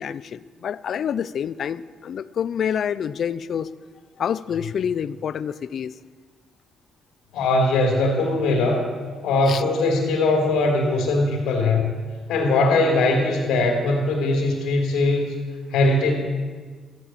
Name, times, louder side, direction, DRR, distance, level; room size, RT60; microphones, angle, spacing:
voice 1, 0.0-3.7 4.2-5.9 9.5-9.6, left 8 dB, 60° left, 17 dB, 0.5 m, -27 dB
voice 2, 7.3-8.8 9.2-11.9 12.3-15.3 15.7-16.1, left 2 dB, 90° left, 1 dB, 2.9 m, -20 dB
14.5 x 12.0 x 7.5 m, 1.5 s
cardioid pair, 90°, 0 cm